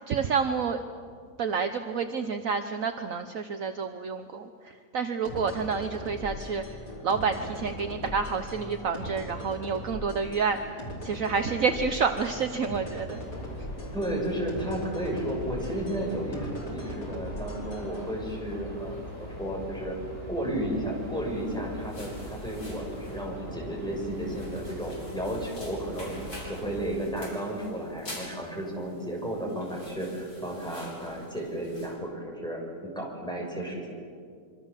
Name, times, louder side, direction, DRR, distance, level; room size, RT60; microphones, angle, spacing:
voice 1, 0.1-0.8 1.4-6.6 7.0-10.7 11.0-13.2, right 5 dB, 60° right, 7 dB, 1.3 m, -29 dB
sound 1, 5.3-18.1, equal, 80° left, 5.3 m, -39 dB
sound 2, 13.0-27.1, left 1 dB, 35° left, 7.5 m, -42 dB
voice 2, 13.9-20.0 20.3-26.1 26.4-33.8, right 1 dB, ahead, -2 dB, 6.6 m, -33 dB
sound 3, 21.2-31.9, left 1 dB, 65° left, 7.2 m, -48 dB
26.5 x 24.5 x 7.4 m, 2.2 s
omnidirectional pair, 1.7 m